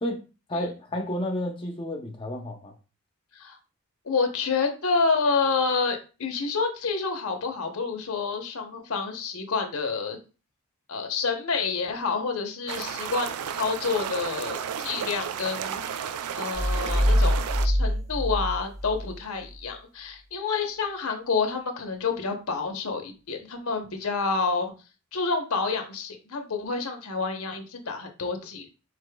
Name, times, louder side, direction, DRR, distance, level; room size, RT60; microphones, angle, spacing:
voice 1, 0.0-2.7, left 1 dB, 25° left, 0.6 m, -31 dB
voice 2, 4.0-10.2 10.9-24.7 25.1-28.7, left 4 dB, 70° left, 0.8 m, -28 dB
sound 1, 12.7-17.7, right 8 dB, 75° right, 0.4 m, -33 dB
sound 2, 16.5-19.2, equal, 30° right, 1.8 m, -24 dB
4.9 x 4.1 x 2.2 m
head